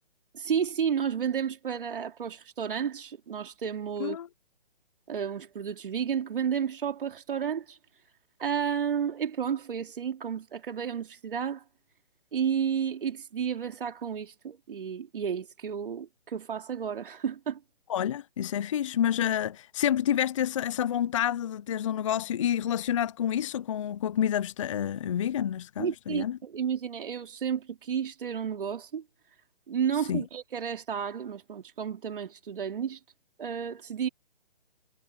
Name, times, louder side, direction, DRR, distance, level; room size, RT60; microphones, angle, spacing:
voice 1, 0.3-4.2 5.1-7.8 8.4-11.6 12.3-17.6 25.8-29.0 29.7-33.0 33.4-34.1, right 7 dB, 55° right, 3.4 m, -32 dB
voice 2, 17.9-26.4 30.1-30.2, left 10 dB, 30° left, 0.6 m, -28 dB
hypercardioid pair, 145°, 31 cm